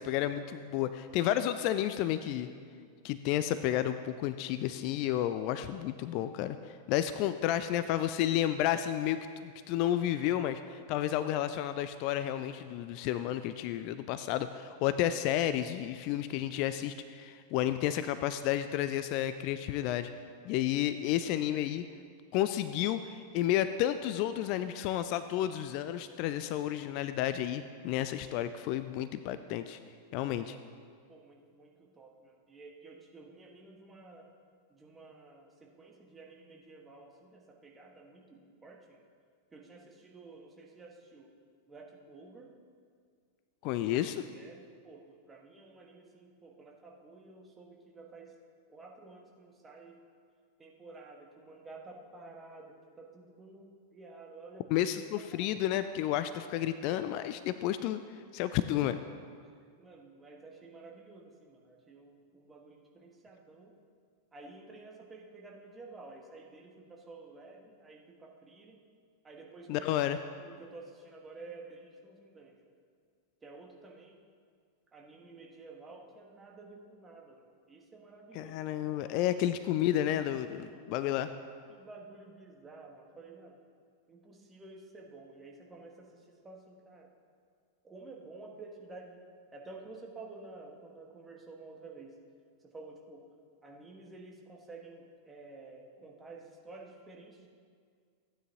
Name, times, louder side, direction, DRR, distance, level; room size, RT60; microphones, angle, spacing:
voice 1, 0.0-2.5 3.0-20.1 20.4-21.8 22.3-29.8 30.1-30.6 43.6-44.2 54.7-58.0 58.3-59.0 69.7-70.2 78.3-81.3, left 12 dB, 45° left, 11 dB, 0.3 m, -31 dB
voice 2, 31.1-34.3 34.7-39.0 39.5-41.3 41.7-42.5 44.3-48.3 48.7-50.0 50.6-54.7 55.2-55.5 59.8-63.7 64.3-68.8 69.2-69.9 70.4-72.6 73.4-74.2 74.9-78.5 79.0-79.3 80.5-80.9 81.7-83.6 84.1-87.1 87.8-89.2 89.5-92.1 92.6-93.3 93.6-97.5, right 3 dB, 15° right, 0 dB, 1.4 m, -51 dB
15.0 x 9.2 x 2.9 m, 2.1 s
figure-of-eight pair, 90°, 0 cm